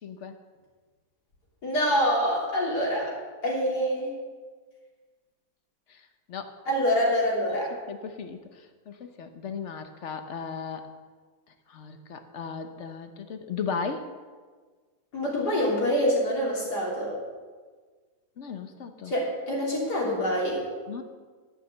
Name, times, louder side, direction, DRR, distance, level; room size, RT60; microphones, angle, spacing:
voice 1, 0.0-0.3 5.9-6.6 7.5-10.9 11.7-14.1 18.4-19.1 20.9-21.0, left 6 dB, 55° left, 8 dB, 1.0 m, -36 dB
voice 2, 1.6-3.1 3.4-4.1 6.7-7.7 15.1-17.2 19.1-20.6, equal, 80° left, -4 dB, 3.7 m, -26 dB
12.0 x 6.6 x 7.5 m, 1.5 s
omnidirectional pair, 1.7 m